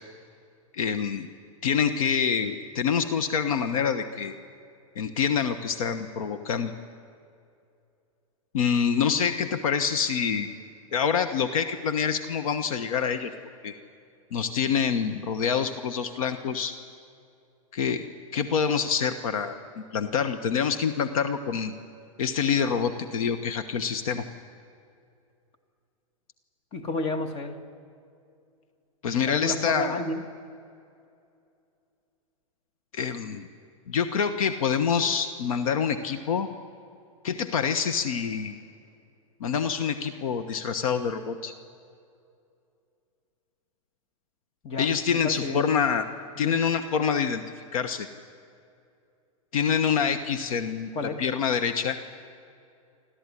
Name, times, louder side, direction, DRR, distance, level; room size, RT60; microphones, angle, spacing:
voice 1, 0.7-1.3 1.6-4.3 5.0-6.7 8.5-10.5 10.9-13.3 13.6-13.7 14.3-16.7 17.7-18.1 18.3-21.7 22.2-24.2 29.0-29.9 32.9-33.5 33.9-36.5 37.2-38.5 39.4-41.5 44.8-46.1 46.4-47.4 47.7-48.1 49.5-50.9 51.2-52.0, left 7 dB, 75° left, 8 dB, 1.2 m, -26 dB
voice 2, 26.7-27.6 29.2-30.2 44.6-45.7 46.4-46.6 50.9-51.2, left 2 dB, 35° left, 5 dB, 2.1 m, -31 dB
29.5 x 13.0 x 9.9 m, 2.5 s
hypercardioid pair, 120°, 18 cm